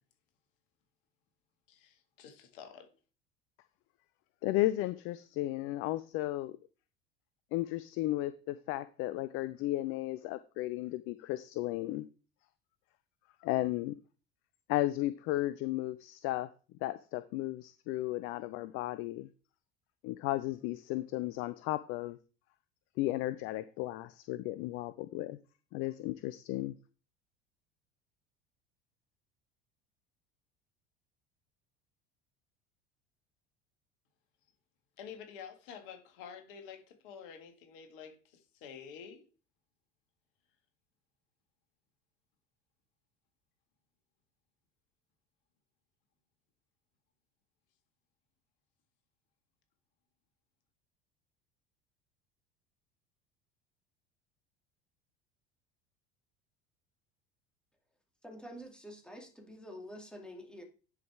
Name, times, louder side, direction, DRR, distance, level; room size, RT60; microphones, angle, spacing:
voice 1, 1.7-2.9 35.0-39.3, left 7 dB, 60° left, 1.8 m, -49 dB
voice 2, 4.4-6.6 7.5-12.1 13.4-13.9 14.7-16.5 16.8-19.3 20.0-22.2 23.0-25.4 25.7-26.7, left 16 dB, 45° left, 0.5 m, -34 dB
voice 3, 58.2-60.6, equal, 5° left, 2.3 m, -47 dB
10.5 x 4.9 x 3.4 m
figure-of-eight pair, 70°, 30 cm